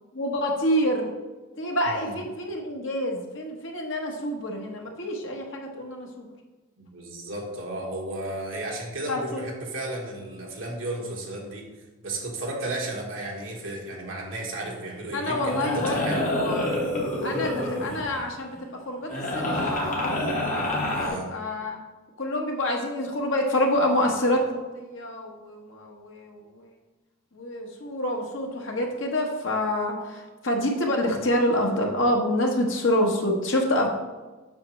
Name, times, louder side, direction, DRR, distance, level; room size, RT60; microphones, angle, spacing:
voice 1, 0.1-1.1 1.6-6.3 9.1-9.4 15.1-16.7 17.2-20.3 20.9-21.8 22.2-26.6 27.3-33.9, left 1 dB, 65° left, 1 dB, 1.2 m, -27 dB
voice 2, 1.9-2.2 6.8-11.7 12.0-16.3 20.9-21.3, right 1 dB, 65° right, -1 dB, 1.6 m, -33 dB
sound 1, 14.6-14.9 15.3-18.2 19.1-21.1, left 1 dB, 35° left, 1.4 m, -28 dB
7.5 x 5.9 x 3.2 m, 1.2 s
head